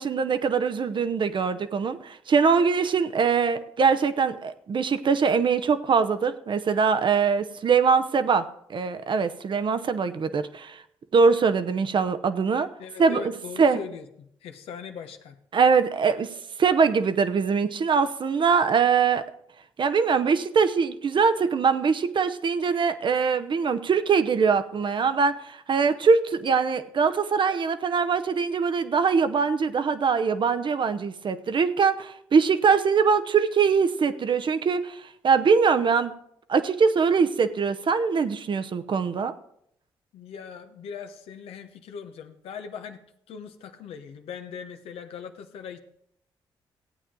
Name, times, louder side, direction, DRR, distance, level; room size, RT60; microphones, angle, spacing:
voice 1, 0.0-10.8 11.1-12.7 13.0-13.2 13.6-13.8 15.5-16.3 16.6-19.2 19.8-36.1 36.5-39.3, right 5 dB, 55° right, 10 dB, 0.8 m, -22 dB
voice 2, 12.8-15.4 40.1-43.0 43.3-45.8, left 7 dB, 75° left, 7 dB, 1.0 m, -40 dB
15.0 x 8.6 x 3.8 m, 0.71 s
supercardioid pair, 50°, 10 cm